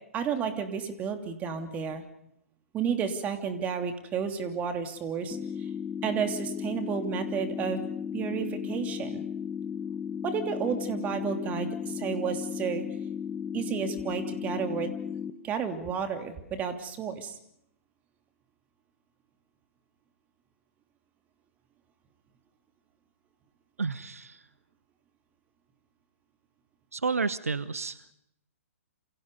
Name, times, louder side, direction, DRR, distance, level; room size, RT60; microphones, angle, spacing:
voice 1, 0.1-2.0 2.7-5.4 6.0-7.8 8.1-9.2 10.2-12.8 13.5-14.9 15.4-17.3, right 7 dB, 20° right, 6 dB, 2.9 m, -31 dB
sound 1, 5.3-15.3, left 7 dB, 10° left, 1.7 m, -35 dB
voice 2, 23.8-24.4 26.9-28.1, right 4 dB, 75° right, 15 dB, 1.2 m, -31 dB
28.0 x 28.0 x 5.4 m, 0.79 s
figure-of-eight pair, 120°, 8 cm